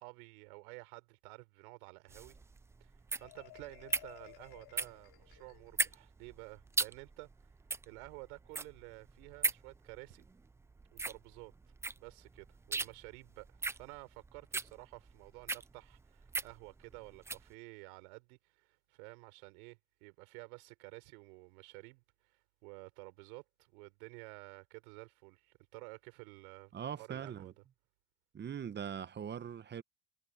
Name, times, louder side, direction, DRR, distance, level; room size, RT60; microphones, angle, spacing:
voice 1, 0.0-2.4 2.8-2.9 3.2-7.3 7.9-10.3 10.9-11.5 12.0-22.0 22.3-26.7 27.0-27.5, right 28 dB, 75° right, 4.1 m, -52 dB
sound 1, 2.1-17.5, right 3 dB, 5° right, 0.3 m, -39 dB
Marimba xylophone, 3.2-6.0, left 20 dB, 55° left, 5.0 m, -57 dB
voice 2, 26.7-27.5 28.3-29.8, right 8 dB, 25° right, 1.0 m, -41 dB
supercardioid pair, 115°, 44 cm